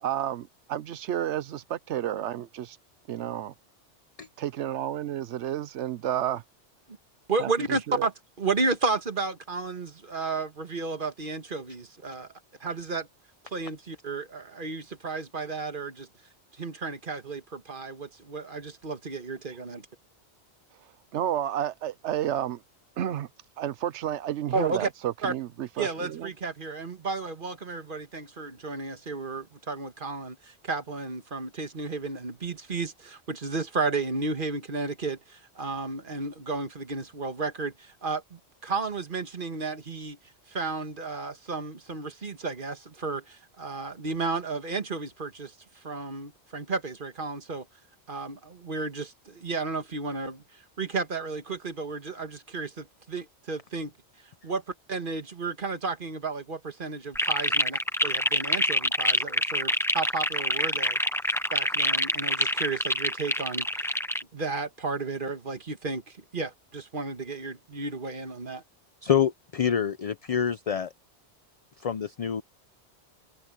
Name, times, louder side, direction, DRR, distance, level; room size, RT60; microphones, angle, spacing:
voice 1, 0.0-2.8 3.1-3.5 4.4-6.4 7.4-7.5 7.9-8.1 21.1-22.6 23.0-23.3 23.6-26.3, right 11 dB, 90° right, 1.0 m, -31 dB
voice 2, 7.3-12.3 12.6-13.1 13.4-16.1 16.5-19.9 24.5-24.9 25.2-25.3 25.8-40.2 40.5-47.7 48.1-53.9 54.4-54.6 54.9-61.0 61.5-64.0 64.3-68.6, right 3 dB, 50° right, 1.7 m, -33 dB
sound 1, 57.1-64.2, equal, 5° left, 0.6 m, -26 dB
voice 3, 69.0-70.9 71.8-72.4, left 8 dB, 45° left, 0.5 m, -26 dB
omnidirectional pair, 1.1 m